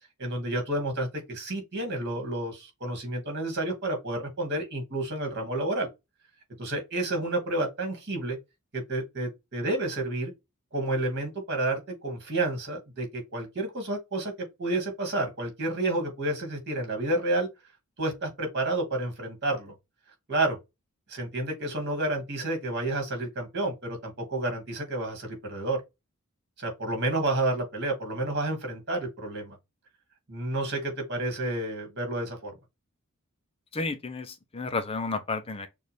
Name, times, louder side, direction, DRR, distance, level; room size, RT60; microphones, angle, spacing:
voice 1, 0.2-5.9 6.6-8.4 8.7-10.3 10.7-17.5 18.0-19.7 20.3-20.6 21.1-25.8 26.6-29.6 30.3-32.5, right 2 dB, 50° right, 2.3 m, -30 dB
voice 2, 33.7-35.7, left 3 dB, 25° left, 0.6 m, -32 dB
6.4 x 2.5 x 3.4 m
head